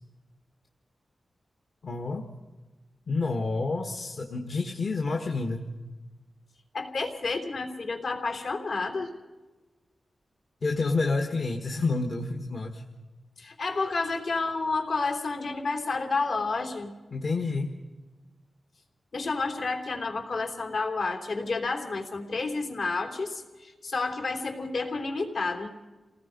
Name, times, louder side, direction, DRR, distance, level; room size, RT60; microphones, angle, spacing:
voice 1, 1.8-2.3 3.1-5.7 10.6-12.8 17.1-17.7, left 3 dB, 50° left, 3 dB, 1.5 m, -29 dB
voice 2, 6.7-9.1 13.4-16.9 19.1-25.7, left 3 dB, 70° left, 3 dB, 3.3 m, -30 dB
28.5 x 18.5 x 5.3 m, 1.2 s
wide cardioid pair, 135°, 0 cm